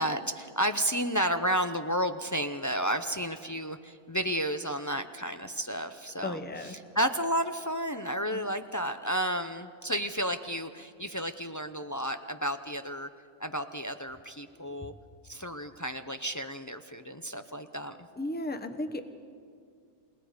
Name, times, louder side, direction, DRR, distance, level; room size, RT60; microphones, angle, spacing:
voice 1, 0.0-13.1 13.4-14.9 15.3-18.0, equal, 30° left, 8 dB, 0.3 m, -32 dB
voice 2, 6.2-6.7 8.3-8.4 14.6-14.7 18.2-19.0, left 1 dB, 10° left, 8 dB, 0.9 m, -35 dB
29.0 x 18.0 x 5.0 m, 2.2 s
omnidirectional pair, 1.3 m